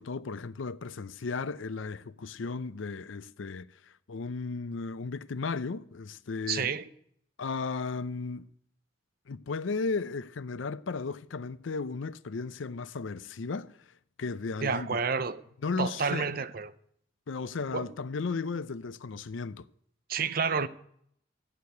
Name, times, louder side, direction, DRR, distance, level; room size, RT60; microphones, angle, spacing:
voice 1, 0.0-3.7 4.1-6.7 7.4-8.5 9.3-13.7 14.2-15.0 15.6-16.3 17.3-19.7, left 4 dB, 80° left, 0.5 m, -35 dB
voice 2, 6.5-6.8 14.6-15.4 15.8-16.7 17.7-17.9 20.1-20.7, right 5 dB, 50° right, 0.7 m, -29 dB
14.0 x 6.7 x 9.4 m
head